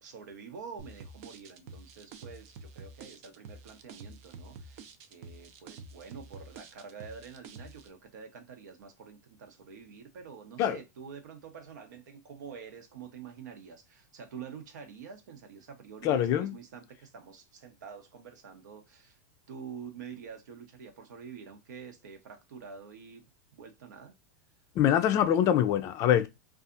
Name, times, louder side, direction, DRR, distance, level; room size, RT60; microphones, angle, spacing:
voice 1, 0.0-19.2 19.5-24.1, right 6 dB, 85° right, 0.8 m, -47 dB
sound 1, 0.8-7.9, right 3 dB, 55° right, 0.5 m, -48 dB
voice 2, 16.0-16.5 24.8-26.3, left 10 dB, 35° left, 0.4 m, -24 dB
2.6 x 2.4 x 2.4 m
supercardioid pair, 140°, 9 cm